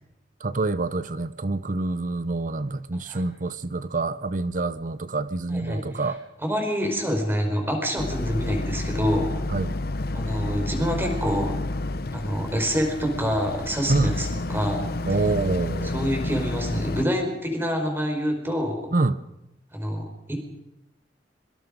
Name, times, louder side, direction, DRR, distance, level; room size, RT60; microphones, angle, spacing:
voice 1, 0.4-6.2 9.5-9.7 13.9-14.2 15.1-15.9 18.9-19.2, right 3 dB, 45° right, 0.8 m, -26 dB
voice 2, 5.5-6.0 6.4-9.4 10.1-11.6 12.1-14.9 15.8-18.8 19.7-20.4, equal, 15° right, 5.0 m, -27 dB
Boat Water vehicle, 8.0-17.0, left 2 dB, 55° left, 0.9 m, -30 dB
25.0 x 24.5 x 5.2 m
head